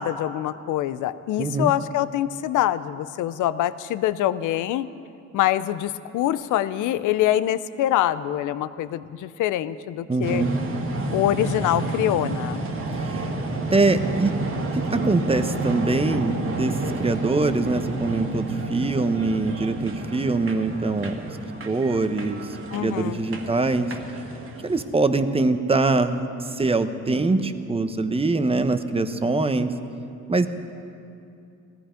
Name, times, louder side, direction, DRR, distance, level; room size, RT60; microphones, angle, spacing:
voice 1, 0.0-4.9 5.3-10.5 11.1-12.7 22.7-23.2, left 12 dB, 80° left, 15 dB, 0.6 m, -24 dB
voice 2, 1.4-1.7 10.1-10.5 13.0-13.2 13.7-14.4 14.7-16.7 17.0-21.2 21.6-22.4 22.8-23.9 24.6-26.2 26.6-29.7 30.3-30.5, right 3 dB, 20° right, 9 dB, 0.9 m, -23 dB
sound 1, 10.2-24.8, right 2 dB, 45° right, 1.8 m, -30 dB
17.0 x 14.0 x 5.1 m, 2.6 s
cardioid pair, 90°, 30 cm